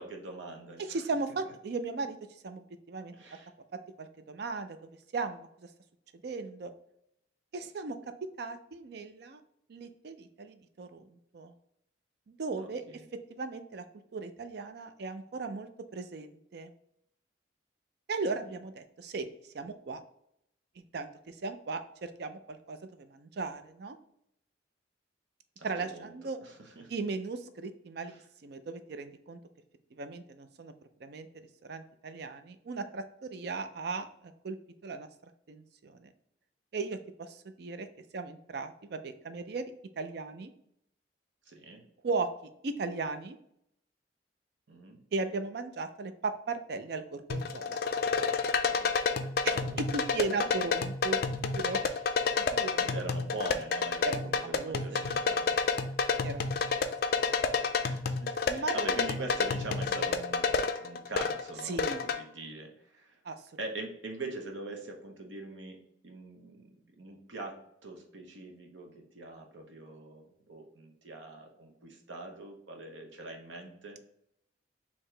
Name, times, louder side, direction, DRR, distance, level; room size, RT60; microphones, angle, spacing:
voice 1, 0.0-1.0 3.2-3.5 12.6-13.1 18.3-18.6 25.6-26.1 26.4-26.9 28.0-28.2 41.5-41.8 44.7-45.0 48.6-49.8 51.8-52.0 52.8-56.0 57.8-60.5 60.8-63.2 63.6-74.0, right 2 dB, 90° right, 2 dB, 0.9 m, -43 dB
voice 2, 0.8-2.2 2.4-3.1 4.0-5.7 6.2-6.7 7.5-9.4 9.7-11.5 12.3-12.8 13.3-13.8 14.1-16.7 18.1-19.3 19.5-20.0 20.9-24.0 25.6-26.4 26.9-29.4 29.9-30.7 31.0-31.3 31.6-34.6 34.8-35.1 35.5-36.1 36.7-37.9 38.1-39.7 40.0-40.5 42.0-42.3 42.6-43.4 45.1-47.8 49.4-51.8 52.4-52.8 54.0-55.1 56.2-56.8 58.4-59.0 61.6-62.1 63.2-63.4, right 3 dB, 60° right, 10 dB, 0.4 m, -37 dB
sound 1, 47.3-62.2, left 5 dB, 55° left, 0.4 m, -30 dB
4.6 x 2.9 x 3.2 m, 0.75 s
head